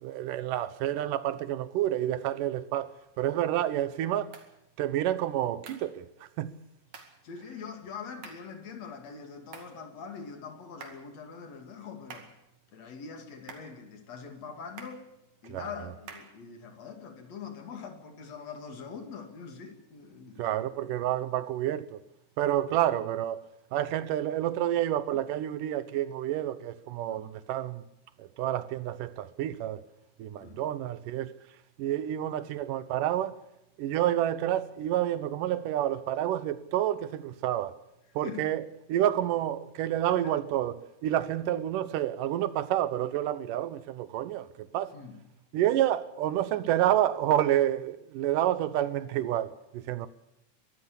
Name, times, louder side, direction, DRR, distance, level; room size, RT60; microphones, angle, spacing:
voice 1, 0.0-4.4 4.8-6.1 6.4-6.5 15.5-15.7 20.4-22.0 22.4-23.4 23.7-27.8 28.2-29.8 30.2-31.3 31.8-33.4 33.8-37.8 38.2-44.5 44.7-44.9 45.5-50.1, right 12 dB, 80° right, 2.5 m, -29 dB
sound 1, 4.3-4.5 5.7-5.9 6.9-7.2 8.2-8.5 9.5-9.8 10.8-11.1 12.1-12.4 13.5-13.8 14.8-15.1 16.1-16.4, right 5 dB, 60° right, 3.4 m, -47 dB
voice 2, 7.2-12.2 12.7-15.1 15.4-20.4 27.1-27.3 30.4-30.6 38.2-38.5 40.1-40.3 44.9-45.2, left 6 dB, 55° left, 3.4 m, -43 dB
23.0 x 14.0 x 8.5 m
omnidirectional pair, 3.8 m